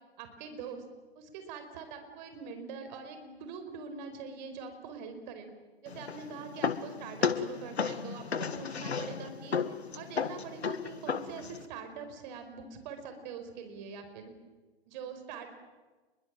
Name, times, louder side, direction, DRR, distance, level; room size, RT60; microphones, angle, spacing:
voice 1, 0.2-0.8 1.1-5.5 5.8-9.6 9.9-14.3 14.9-15.5, right 5 dB, 45° right, 8 dB, 4.9 m, -43 dB
sound 1, 5.9-11.7, left 6 dB, 80° left, 1.8 m, -34 dB
29.0 x 23.0 x 7.7 m, 1.2 s
figure-of-eight pair, 120°, 32 cm